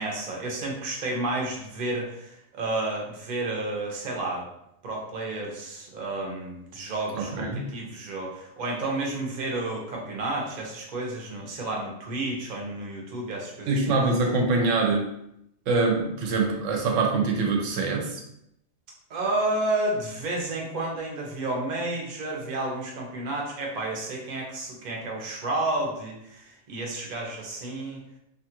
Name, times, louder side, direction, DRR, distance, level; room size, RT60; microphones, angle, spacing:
voice 1, 0.0-4.5 4.8-13.9 19.1-28.0, right 2 dB, 45° right, -1 dB, 0.6 m, -31 dB
voice 2, 7.1-7.6 13.7-15.0 15.7-18.2, right 3 dB, 70° right, 1 dB, 0.9 m, -24 dB
2.7 x 2.3 x 2.8 m, 0.80 s
omnidirectional pair, 1.4 m